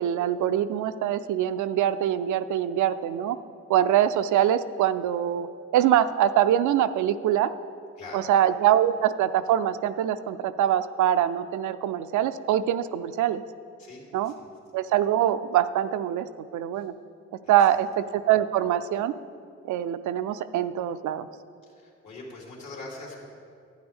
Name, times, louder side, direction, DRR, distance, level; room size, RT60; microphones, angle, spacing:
voice 1, 0.0-3.4 3.7-5.5 5.7-7.5 8.1-13.4 14.1-14.3 14.7-16.3 16.5-16.9 17.5-19.1 19.7-21.3, right 11 dB, 75° right, 12 dB, 0.5 m, -24 dB
voice 2, 13.8-14.3 16.7-16.9 17.4-17.8 21.7-23.3, left 2 dB, 75° left, -3 dB, 2.8 m, -43 dB
11.5 x 9.5 x 3.5 m, 2.3 s
cardioid pair, 90°, 30 cm